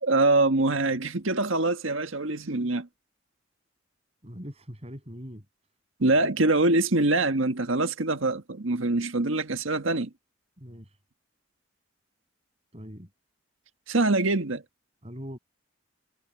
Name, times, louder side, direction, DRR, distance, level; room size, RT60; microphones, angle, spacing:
voice 1, 0.0-2.9 6.0-10.1 13.9-14.6, right 2 dB, 85° right, 1.6 m, -24 dB
voice 2, 4.2-5.4 10.6-11.0 12.7-13.1 15.0-15.4, equal, 30° right, 7.6 m, -41 dB
head